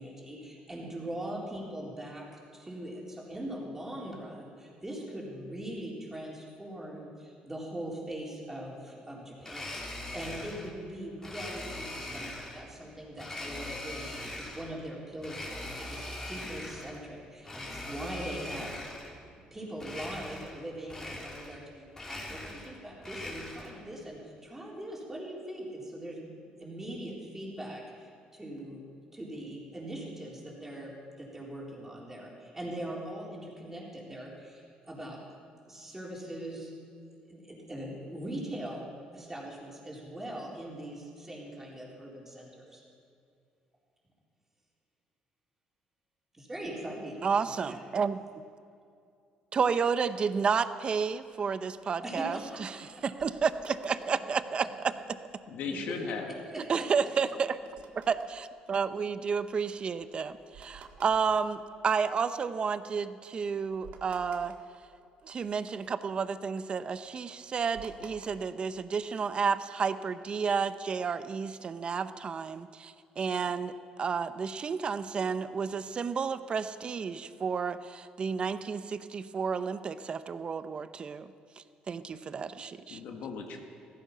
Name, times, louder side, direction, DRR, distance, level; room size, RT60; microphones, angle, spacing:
voice 1, 0.0-2.3 2.5-19.0 19.2-28.8 29.1-35.2 35.6-36.7 37.3-38.8 39.1-42.8 46.3-47.8 52.0-53.0 55.7-55.8 56.5-56.9 83.5-83.6, right 1 dB, 15° right, -3 dB, 4.0 m, -41 dB
Domestic sounds home sounds, 9.4-10.7 11.2-12.7 13.2-14.7 15.2-17.0 17.4-19.2 19.8-20.6 20.9-21.6 21.9-23.8, left 1 dB, 20° left, 3.0 m, -41 dB
voice 2, 47.2-48.2 49.5-54.7 56.7-57.6 58.0-64.5 65.2-73.7 74.0-83.0, right 6 dB, 35° right, 13 dB, 0.7 m, -31 dB
sound 1, 51.2-54.5 54.9-55.0 55.1-55.5 55.9-62.6 63.0-63.1 63.4-65.5 65.8-68.8, right 5 dB, 75° right, 1.8 m, -54 dB
voice 3, 55.5-56.4 82.6-83.6, left 5 dB, 75° left, 3 dB, 1.8 m, -38 dB
15.0 x 14.5 x 5.7 m, 2.5 s
cardioid pair, 110°, 3 cm